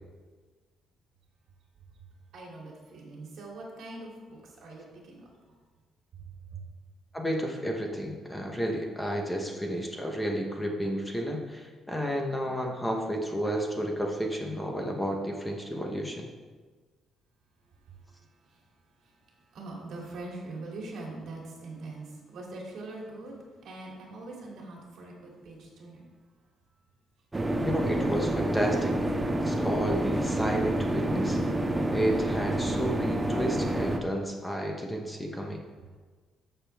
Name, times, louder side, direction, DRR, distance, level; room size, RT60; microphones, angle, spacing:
voice 1, 2.3-5.3 6.5-6.6 19.5-23.3 23.6-26.0, right 2 dB, 60° right, -2 dB, 2.8 m, -42 dB
voice 2, 7.1-16.3 27.6-28.9 29.4-31.4 31.9-35.6, equal, 5° left, 1 dB, 1.0 m, -31 dB
sound 1, 27.3-34.0, right 1 dB, 15° right, 0.6 m, -28 dB
13.5 x 6.7 x 3.4 m, 1.4 s
cardioid pair, 165°, 0 cm